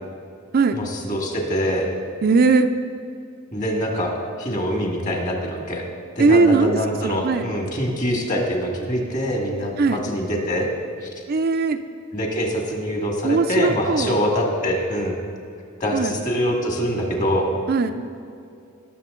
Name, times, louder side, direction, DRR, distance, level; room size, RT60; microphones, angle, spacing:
voice 1, 0.7-1.9 3.5-4.1 4.4-5.8 6.1-10.7 11.0-11.1 12.1-15.1 15.8-17.5, equal, 40° left, 1 dB, 1.8 m, -24 dB
voice 2, 2.2-2.7 6.2-7.5 9.8-10.0 11.3-11.8 13.2-14.1 15.9-16.1 17.7-17.9, right 4 dB, 45° right, 8 dB, 0.4 m, -19 dB
18.0 x 7.0 x 3.7 m, 2.5 s
head